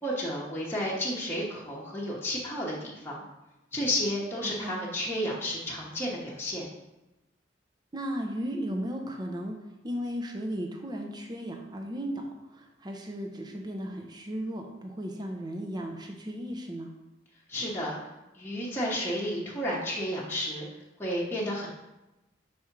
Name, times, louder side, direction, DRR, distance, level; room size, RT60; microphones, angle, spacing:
voice 1, 0.0-3.2 3.7-6.7 17.5-18.0 18.3-20.7 21.0-21.7, equal, 10° left, -6 dB, 1.0 m, -32 dB
voice 2, 4.4-4.8 7.9-9.6 9.8-16.9, equal, 20° right, 2 dB, 0.6 m, -35 dB
4.9 x 4.3 x 5.8 m, 1.0 s
head